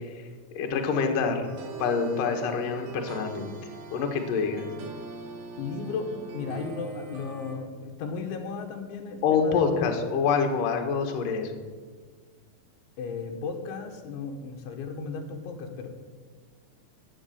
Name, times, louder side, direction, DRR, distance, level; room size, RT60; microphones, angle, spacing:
voice 1, 0.0-1.5 1.8-3.5 3.9-4.7 9.2-11.5, left 5 dB, 60° left, 4 dB, 2.7 m, -26 dB
sound 1, 1.4-7.6, right 4 dB, 60° right, 2.7 m, -42 dB
voice 2, 5.6-9.9 13.0-15.9, left 5 dB, 90° left, 3 dB, 3.9 m, -35 dB
17.0 x 7.4 x 8.7 m, 1.5 s
omnidirectional pair, 5.1 m